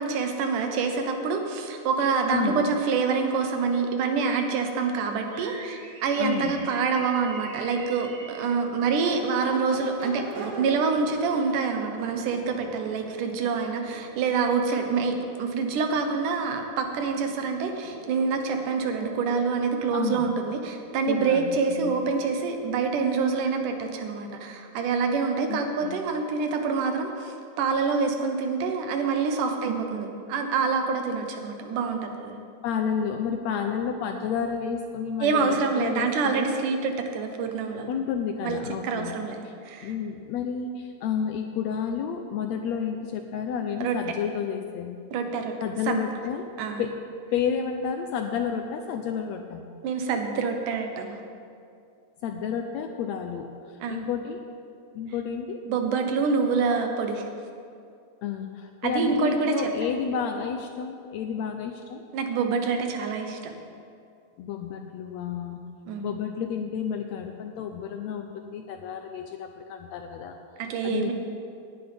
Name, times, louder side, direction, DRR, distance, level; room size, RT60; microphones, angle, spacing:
voice 1, 0.0-32.4 35.2-37.9 38.4-39.9 43.8-44.0 45.1-45.5 45.8-46.0 46.6-46.9 49.8-51.2 53.8-54.1 55.7-57.3 58.8-59.7 62.1-63.5 65.9-66.1 70.6-71.1, right 5 dB, 85° right, 4 dB, 2.6 m, -26 dB
voice 2, 2.3-2.8 6.2-6.6 19.9-20.3 21.1-22.0 25.5-26.1 32.6-36.5 37.9-39.1 39.8-45.0 45.6-46.5 46.8-47.0 47.3-49.6 52.2-53.5 53.9-54.4 54.9-55.6 58.2-62.0 64.4-65.6 66.0-70.4 70.8-71.1, left 7 dB, 80° left, 5 dB, 1.6 m, -31 dB
sound 1, 5.2-8.4, right 3 dB, 50° right, 1.2 m, -44 dB
Crowd / Race car auto racing / Accelerating revving vroom, 6.5-23.6, right 2 dB, 65° right, 1.0 m, -46 dB
18.0 x 9.9 x 3.4 m, 2.4 s
omnidirectional pair, 3.6 m